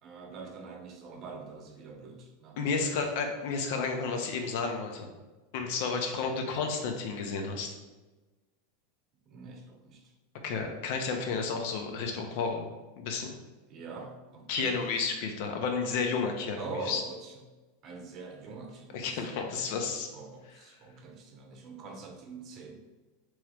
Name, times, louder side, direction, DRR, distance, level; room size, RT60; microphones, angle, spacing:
voice 1, 0.0-3.1 9.3-10.1 13.7-14.8 16.6-17.3 17.8-19.6 20.1-22.8, right 3 dB, 45° right, 3 dB, 0.8 m, -44 dB
voice 2, 2.6-5.1 5.5-7.7 10.4-12.7 13.0-13.3 14.5-17.0 18.9-20.1, left 4 dB, 65° left, 4 dB, 0.7 m, -32 dB
3.6 x 3.1 x 3.4 m, 1.2 s
supercardioid pair, 120°, 0 cm